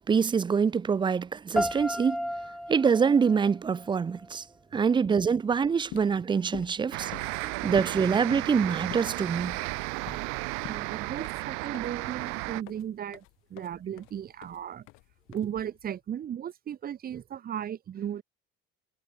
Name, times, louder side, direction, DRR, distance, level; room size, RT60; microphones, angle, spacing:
voice 1, 0.1-2.3 2.7-4.4 4.7-7.1 7.6-9.6, right 6 dB, 20° right, 0.7 m, -25 dB
sound 1, 1.6-4.5, equal, ahead, 1.0 m, -34 dB
sound 2, 5.7-15.9, left 25 dB, 80° left, 4.7 m, -48 dB
sound 3, 6.9-12.6, right 35 dB, 85° right, 3.0 m, -34 dB
voice 2, 10.6-13.2 13.5-14.9 15.3-18.2, right 9 dB, 45° right, 4.6 m, -36 dB
supercardioid pair, 100°, 21 cm